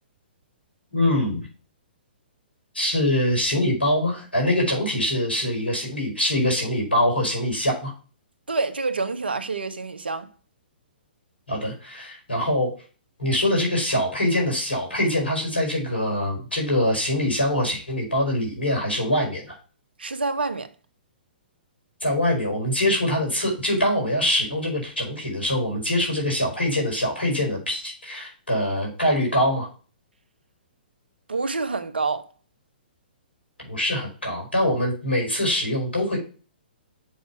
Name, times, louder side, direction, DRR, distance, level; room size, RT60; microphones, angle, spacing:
voice 1, 0.9-1.5 2.7-7.9 11.5-12.7 13.2-19.5 22.0-29.7 33.7-36.2, left 1 dB, 90° left, 4.8 m, -24 dB
voice 2, 8.5-10.3 20.0-20.7 31.3-32.3, right 3 dB, 75° right, 1.2 m, -27 dB
7.2 x 5.9 x 5.9 m
figure-of-eight pair, 120°, 6 cm